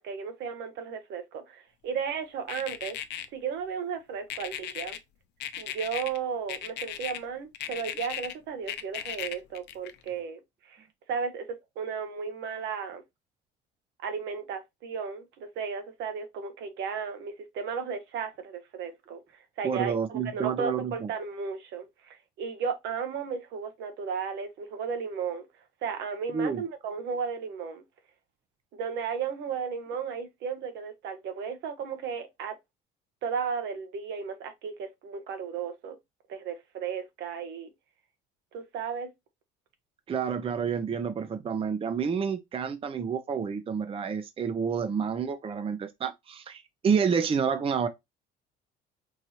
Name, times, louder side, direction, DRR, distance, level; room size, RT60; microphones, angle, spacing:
voice 1, 0.0-3.0 3.3-5.0 5.6-11.4 11.8-13.0 14.0-19.2 19.6-25.5 25.8-27.8 28.7-32.6 33.2-36.0 36.3-37.7 38.5-39.1, right 6 dB, 70° right, 1.1 m, -34 dB
sound 1, 2.5-3.3 4.3-5.0 5.4-6.2 6.5-7.2 7.5-8.3 8.7-10.1, left 11 dB, 60° left, 0.6 m, -36 dB
voice 2, 19.6-21.1 26.3-26.6 40.1-47.9, right 6 dB, 30° right, 0.6 m, -29 dB
4.6 x 2.7 x 2.8 m
supercardioid pair, 90°, 19 cm